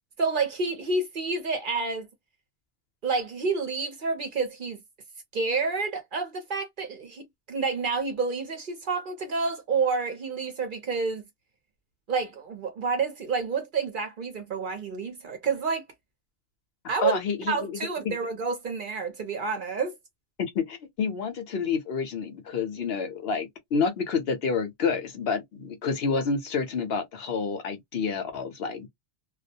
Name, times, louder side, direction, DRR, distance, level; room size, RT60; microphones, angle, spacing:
voice 1, 0.2-2.1 3.0-4.8 5.3-11.2 12.1-15.8 16.9-17.2 17.5-20.0, right 4 dB, 50° right, 0.7 m, -29 dB
voice 2, 17.0-18.2 20.5-28.9, left 5 dB, 60° left, 0.9 m, -29 dB
2.3 x 2.0 x 2.6 m
omnidirectional pair, 1.2 m